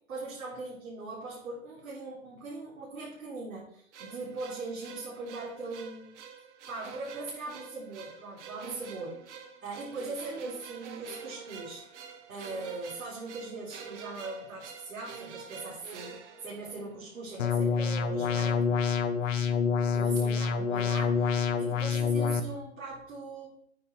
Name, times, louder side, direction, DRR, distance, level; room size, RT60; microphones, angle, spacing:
voice 1, 0.1-6.2 6.7-11.8 12.3-18.7 19.9-23.5, right 3 dB, 85° right, -8 dB, 4.1 m, -40 dB
sound 1, 3.9-17.2, right 6 dB, 55° right, 1.6 m, -47 dB
sound 2, 17.4-22.4, left 6 dB, 65° left, 1.1 m, -27 dB
9.4 x 5.7 x 4.6 m, 0.68 s
hypercardioid pair, 145°, 41 cm